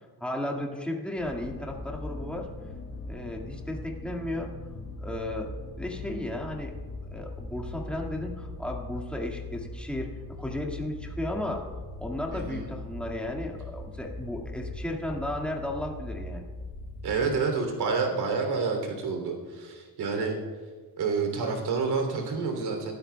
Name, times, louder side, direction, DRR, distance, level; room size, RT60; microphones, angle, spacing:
voice 1, 0.2-2.5 3.1-4.5 5.0-6.7 7.1-11.7 12.0-16.5, left 1 dB, 5° left, 0 dB, 1.9 m, -34 dB
sound 1, 1.2-17.4, left 2 dB, 30° left, 1.6 m, -40 dB
voice 2, 12.3-12.7 17.0-20.4 21.0-22.9, right 4 dB, 80° right, 3 dB, 3.1 m, -28 dB
23.0 x 13.0 x 2.3 m, 1.5 s
cardioid pair, 125°, 38 cm